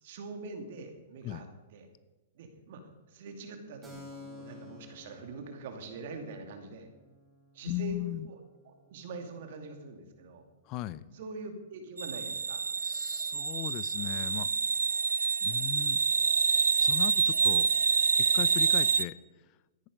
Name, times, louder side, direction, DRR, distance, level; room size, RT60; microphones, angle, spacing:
voice 1, 0.0-1.9 2.3-2.8 3.1-6.9 7.5-8.4 8.6-10.4 11.1-12.6, right 3 dB, 60° right, 5 dB, 2.4 m, -44 dB
Keyboard (musical), 3.8-11.1, left 3 dB, 10° right, 4.5 m, -54 dB
voice 2, 7.6-8.3 10.7-11.1 12.8-14.5 15.4-16.0 16.8-17.7 18.2-19.2, left 15 dB, 40° left, 18 dB, 0.6 m, -37 dB
sound 1, 12.0-19.0, right 5 dB, 85° right, 0.5 m, -27 dB
13.5 x 10.0 x 5.4 m, 1.1 s
hypercardioid pair, 115°, 0 cm